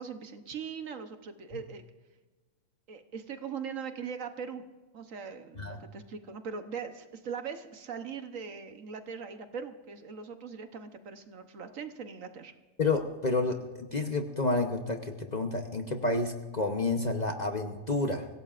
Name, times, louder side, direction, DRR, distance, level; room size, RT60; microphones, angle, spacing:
voice 1, 0.0-1.8 2.9-4.6 4.9-12.5, right 6 dB, 60° right, 8 dB, 1.3 m, -40 dB
voice 2, 12.8-18.3, left 3 dB, 35° left, 5 dB, 0.9 m, -30 dB
25.5 x 16.5 x 2.5 m, 1.3 s
omnidirectional pair, 1.6 m